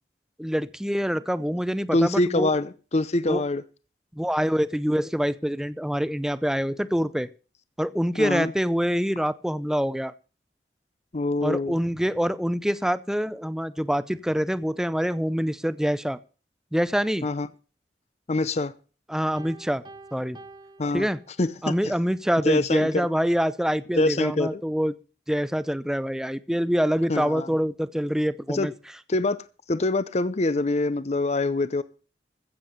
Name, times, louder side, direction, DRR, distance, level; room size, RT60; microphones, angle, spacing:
voice 1, 0.4-2.5 3.3-3.4 4.1-7.3 7.8-10.1 11.4-16.2 16.7-17.3 19.1-19.8 20.1-20.4 20.9-21.2 21.6-24.9 25.3-28.7, equal, 5° right, 0.5 m, -25 dB
voice 2, 1.9-3.6 8.2-8.5 11.1-11.8 17.2-17.5 18.3-18.7 20.8-21.1 21.4-21.9 22.4-23.1 24.0-24.6 27.1-27.5 28.5-28.7 29.1-29.4 29.7-31.8, left 2 dB, 40° left, 0.7 m, -24 dB
Piano, 19.4-21.7, right 3 dB, 25° right, 0.9 m, -48 dB
15.0 x 7.5 x 6.6 m
head